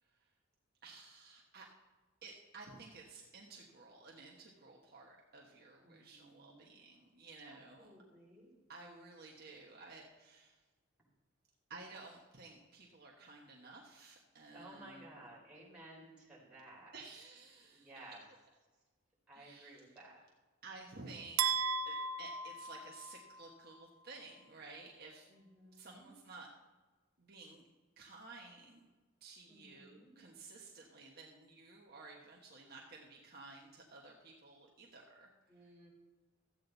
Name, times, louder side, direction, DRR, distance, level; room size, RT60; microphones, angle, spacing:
voice 1, 0.8-1.7 2.2-7.9 8.7-10.6 11.7-15.2 16.9-18.0 19.3-19.9 20.6-21.5 21.9-25.3 25.7-26.5 27.2-27.6 28.0-28.8 29.2-35.7, right 3 dB, 45° right, -2 dB, 1.3 m, -54 dB
voice 2, 5.8-6.7 7.4-8.5 14.5-17.0 17.7-18.2 19.3-20.2 25.3-26.1 29.5-30.2 35.5-35.9, right 1 dB, 5° right, -7 dB, 4.2 m, -56 dB
sound 1, 21.4-23.5, right 5 dB, 70° right, 0.5 m, -36 dB
14.0 x 8.6 x 4.0 m, 1.3 s
head